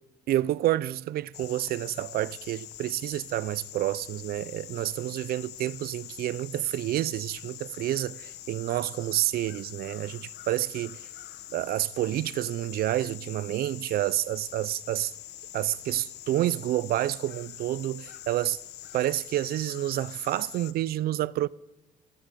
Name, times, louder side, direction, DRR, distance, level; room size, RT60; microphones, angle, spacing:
voice 1, 0.3-11.1 11.5-15.1 15.5-18.6 18.9-21.5, right 14 dB, 65° right, 0.6 m, -29 dB
sound 1, 1.3-20.7, left 14 dB, 80° left, 1.3 m, -44 dB
27.0 x 18.5 x 5.2 m
cardioid pair, 110°, 17 cm